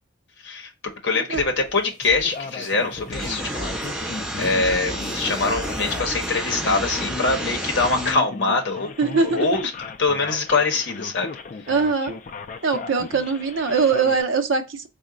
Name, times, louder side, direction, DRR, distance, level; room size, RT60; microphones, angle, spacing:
voice 1, 1.0-3.8 4.3-8.9 9.2-9.6 10.0-11.3, left 3 dB, 60° left, 0.8 m, -23 dB
sound 1, 1.3-7.3, right 1 dB, 35° right, 0.7 m, -42 dB
Male speech man speaking, 2.2-14.2, left 4 dB, 40° left, 0.3 m, -37 dB
sound 2, 3.1-8.1, right 1 dB, ahead, 1.1 m, -30 dB
voice 2, 9.0-9.5 11.7-12.2 12.6-14.9, right 4 dB, 75° right, 0.6 m, -22 dB
3.7 x 2.1 x 3.7 m
head